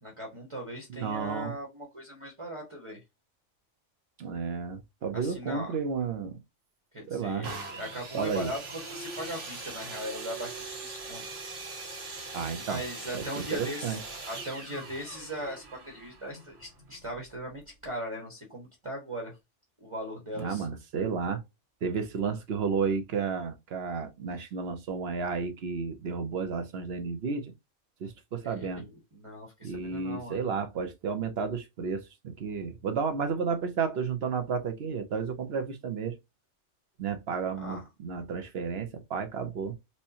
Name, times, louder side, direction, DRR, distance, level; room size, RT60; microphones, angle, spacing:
voice 1, 0.0-3.0 5.1-5.7 6.9-11.2 11.9-12.3 12.7-14.0 14.2-19.3 19.8-20.7 28.4-30.4 37.6-37.8, equal, 25° right, 1.0 m, -39 dB
voice 2, 0.9-1.5 4.2-6.4 7.1-7.5 8.1-8.5 12.3-12.8 13.1-14.0 20.3-21.4 21.8-27.5 28.0-28.8 29.6-36.2 37.0-39.8, right 5 dB, 65° right, 0.9 m, -32 dB
sound 1, 7.4-17.1 17.8-17.9, right 3 dB, 80° right, 1.6 m, -41 dB
4.2 x 2.2 x 2.7 m
omnidirectional pair, 1.2 m